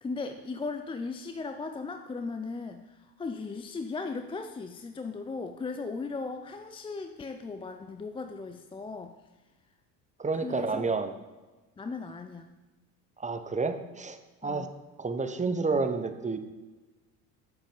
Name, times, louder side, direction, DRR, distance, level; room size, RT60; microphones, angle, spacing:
voice 1, 0.0-9.2 10.4-10.9 11.8-12.6 14.4-14.7, left 4 dB, 10° left, 7 dB, 0.4 m, -37 dB
voice 2, 10.2-11.1 13.2-14.7 15.0-16.4, right 4 dB, 15° right, 9 dB, 0.8 m, -30 dB
7.9 x 7.1 x 5.4 m, 1.2 s
hypercardioid pair, 70°, 50 cm